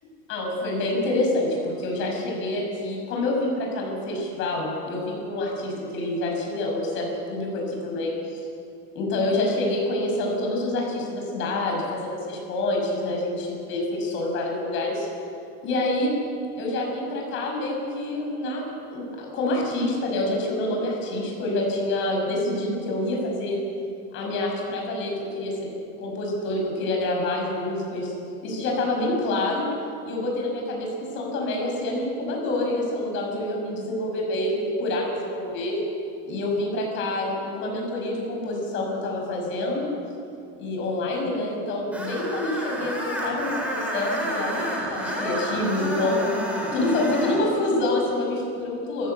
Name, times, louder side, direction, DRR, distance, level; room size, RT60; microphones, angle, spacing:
voice 1, 0.3-8.4 8.9-15.1 15.6-16.1 16.6-23.6 24.1-25.5 26.0-28.1 28.4-29.7 30.0-35.8 36.3-39.9 40.6-46.3 46.7-49.1, left 2 dB, 40° left, 0 dB, 6.2 m, -27 dB
Screech, 41.9-47.5, equal, 5° right, 3.5 m, -29 dB
21.0 x 16.0 x 8.1 m, 2.6 s
cardioid pair, 170°, 32 cm